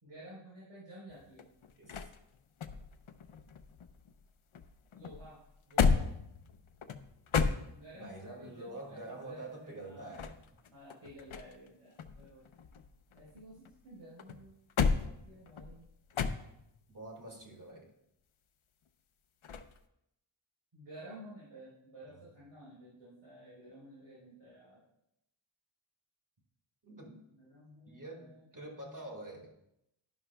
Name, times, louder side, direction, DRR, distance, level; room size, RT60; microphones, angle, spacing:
voice 1, 0.0-1.5 4.9-5.4 5.7-6.1 7.7-10.1 10.7-12.4 13.1-14.6 14.8-15.9 20.7-24.8 27.3-28.9, right 1 dB, 85° right, -9 dB, 3.9 m, -53 dB
sound 1, 1.1-4.3 4.5-8.2 9.9-11.7 12.0-13.7 14.2-16.8 19.4-19.8, left 5 dB, 80° left, 0.7 m, -34 dB
voice 2, 1.8-2.1 7.9-10.4 16.9-17.9 26.8-27.2 27.9-29.5, right 2 dB, 40° right, 0 dB, 2.0 m, -46 dB
11.0 x 11.0 x 2.2 m, 0.80 s
wide cardioid pair, 80°, 48 cm